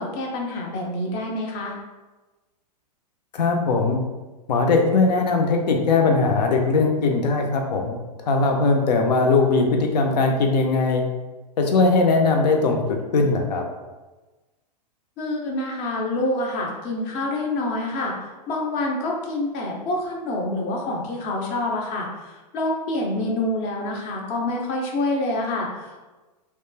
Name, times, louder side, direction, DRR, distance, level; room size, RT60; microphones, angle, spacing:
voice 1, 0.0-1.8 15.2-18.1 18.5-26.1, left 2 dB, 35° left, 0 dB, 0.6 m, -27 dB
voice 2, 3.3-4.0 4.5-8.0 8.3-11.0 11.6-13.6, left 3 dB, 80° left, 3 dB, 0.6 m, -20 dB
2.9 x 2.2 x 2.2 m, 1.2 s
hypercardioid pair, 135°, 21 cm